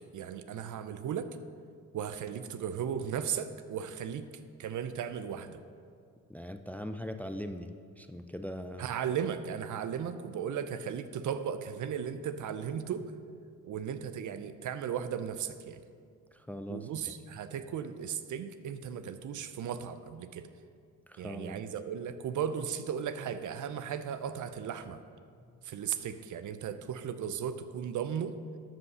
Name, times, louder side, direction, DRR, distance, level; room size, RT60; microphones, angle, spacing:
voice 1, 0.1-1.3 1.9-4.3 4.6-5.6 8.8-13.0 13.6-15.8 16.7-20.5 21.2-25.0 25.6-28.3, right 8 dB, 55° right, 11 dB, 0.7 m, -36 dB
voice 2, 6.3-8.9 16.3-16.9 21.1-21.6 25.4-25.6, equal, 5° left, 8 dB, 0.4 m, -41 dB
12.5 x 5.5 x 5.5 m, 2.2 s
supercardioid pair, 75°, 36 cm